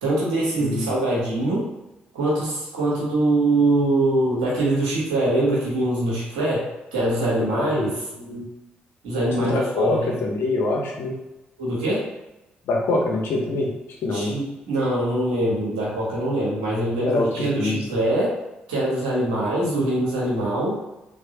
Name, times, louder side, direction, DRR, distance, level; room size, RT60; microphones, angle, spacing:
voice 1, 0.0-1.7 2.1-8.0 9.0-10.1 11.6-12.1 14.1-18.4 18.7-20.8, right 1 dB, 85° right, -6 dB, 1.0 m, -23 dB
voice 2, 0.6-0.9 7.4-7.9 8.1-8.4 9.4-11.2 12.6-13.7 14.0-14.3 17.0-17.8, left 2 dB, 65° left, -1 dB, 0.8 m, -25 dB
3.1 x 2.6 x 2.8 m, 0.97 s
hypercardioid pair, 45°, 4 cm